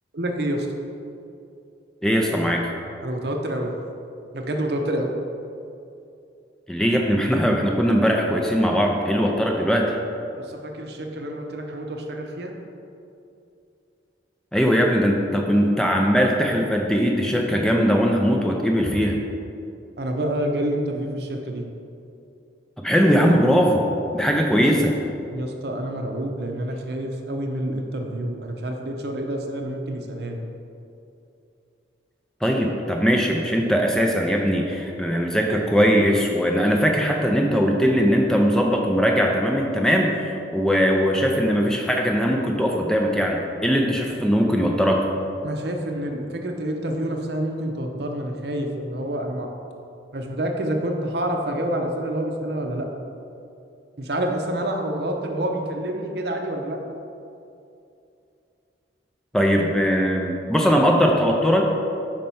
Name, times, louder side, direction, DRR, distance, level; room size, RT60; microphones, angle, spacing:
voice 1, 0.1-0.7 3.0-3.7 4.3-5.1 10.4-12.5 20.0-21.7 25.3-30.4 45.4-49.5 50.1-52.9 54.0-56.8, right 1 dB, 65° right, 3 dB, 0.6 m, -28 dB
voice 2, 2.0-2.7 6.7-9.9 14.5-19.2 22.8-23.8 24.1-24.9 32.4-45.1 59.3-61.7, equal, 5° left, 0 dB, 0.4 m, -20 dB
5.2 x 4.4 x 5.4 m, 2.6 s
head